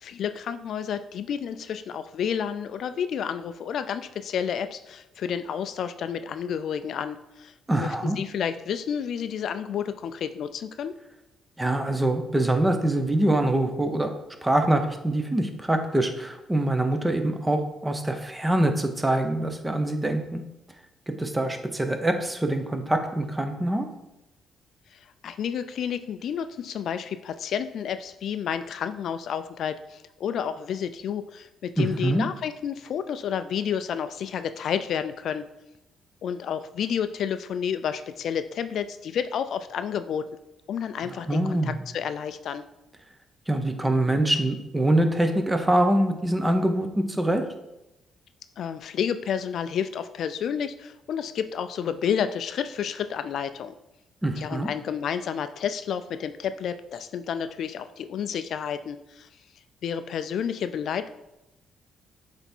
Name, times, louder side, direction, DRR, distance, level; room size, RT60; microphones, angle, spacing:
voice 1, 0.0-10.9 24.9-35.5 36.2-40.3 40.7-42.6 48.6-53.7 54.4-59.3 59.8-61.1, left 8 dB, 70° left, 11 dB, 0.3 m, -30 dB
voice 2, 7.7-8.2 11.6-14.1 14.4-20.4 21.1-23.9 31.8-32.3 41.3-41.8 43.5-47.4 54.2-54.7, right 1 dB, 15° right, 6 dB, 0.9 m, -24 dB
7.9 x 3.5 x 4.4 m, 0.91 s
cardioid pair, 90°, 0 cm